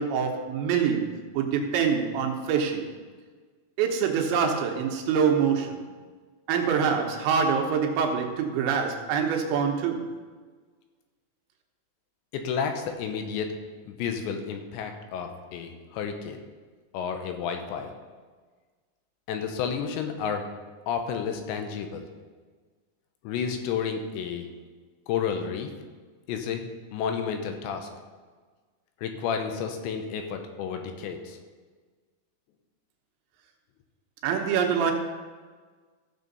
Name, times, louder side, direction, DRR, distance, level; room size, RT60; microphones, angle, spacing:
voice 1, 0.0-2.9 3.8-5.9 6.5-10.1 34.2-34.9, right 6 dB, 90° right, 2 dB, 3.5 m, -25 dB
voice 2, 12.3-13.6 13.8-16.4 16.9-17.9 19.3-20.5 20.9-22.0 23.2-24.5 25.1-25.7 26.3-27.9 29.0-31.4, left 7 dB, 90° left, 5 dB, 3.2 m, -31 dB
15.0 x 6.9 x 4.1 m, 1.4 s
omnidirectional pair, 5.1 m